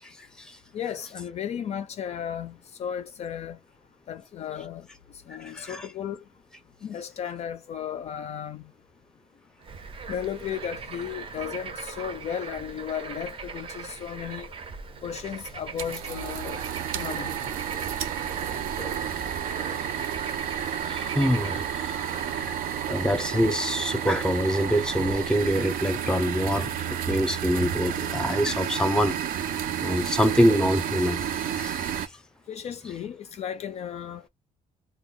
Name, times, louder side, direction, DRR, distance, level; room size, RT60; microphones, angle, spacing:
voice 1, 0.7-3.6 4.1-4.9 5.3-6.2 6.8-8.6 10.1-14.5 15.0-16.6 16.9-17.3 32.5-34.3, left 9 dB, 50° left, 0.4 m, -34 dB
voice 2, 5.5-5.9 18.5-18.9 20.9-22.6 22.9-29.2 29.8-32.1, equal, 5° left, 0.6 m, -25 dB
Bird / Frog, 9.6-23.4, right 5 dB, 40° right, 0.5 m, -40 dB
sound 1, 15.8-32.1, right 9 dB, 85° right, 0.5 m, -31 dB
2.1 x 2.1 x 3.7 m
cardioid pair, 140°, 14 cm